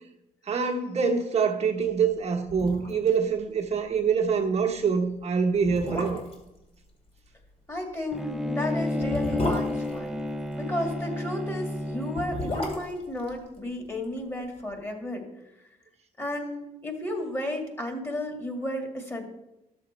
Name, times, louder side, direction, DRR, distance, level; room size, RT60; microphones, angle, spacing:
voice 1, 0.5-6.2, right 6 dB, 50° right, 0 dB, 1.2 m, -25 dB
sound 1, 2.1-2.2 2.5-3.2 3.4-3.5 3.9-4.1 4.8-4.9 5.5-6.5 8.0-10.7 11.9-14.2 14.4-14.5, left 1 dB, 40° left, 2.5 m, -34 dB
voice 2, 7.7-10.2 10.5-15.7 16.2-19.2, left 1 dB, 15° left, 3 dB, 2.1 m, -33 dB
Bowed string instrument, 8.1-12.8, left 1 dB, 5° right, 0.5 m, -31 dB
12.5 x 7.0 x 4.3 m, 0.94 s
cardioid pair, 105°, 15 cm